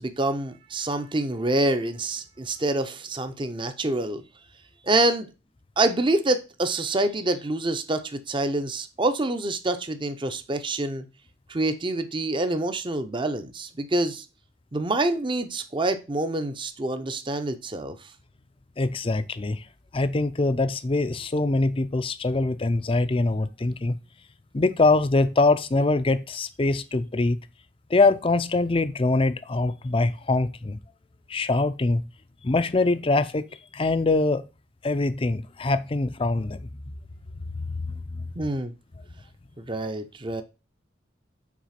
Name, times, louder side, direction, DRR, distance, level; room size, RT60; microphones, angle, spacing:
voice 1, 0.0-4.2 4.8-5.3 5.8-11.0 11.5-14.3 14.7-18.1 38.4-38.7 39.6-40.4, right 2 dB, 25° right, 0.7 m, -26 dB
voice 2, 18.8-19.6 19.9-24.0 24.5-27.4 27.9-30.8 31.3-32.0 32.4-33.4 33.7-34.4 34.8-36.6 37.7-38.0, left 2 dB, 25° left, 0.5 m, -23 dB
6.0 x 4.5 x 5.8 m
head